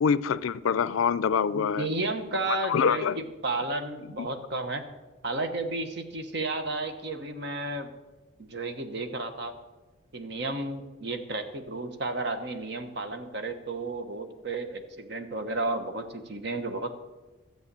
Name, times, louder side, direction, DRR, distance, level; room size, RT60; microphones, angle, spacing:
voice 1, 0.0-1.9 2.6-3.2 4.2-4.3, left 6 dB, 80° left, 0.4 m, -25 dB
voice 2, 1.5-4.8 5.2-7.9 8.4-9.5 10.1-16.9, right 2 dB, 55° right, 1.1 m, -32 dB
13.0 x 7.8 x 6.8 m
head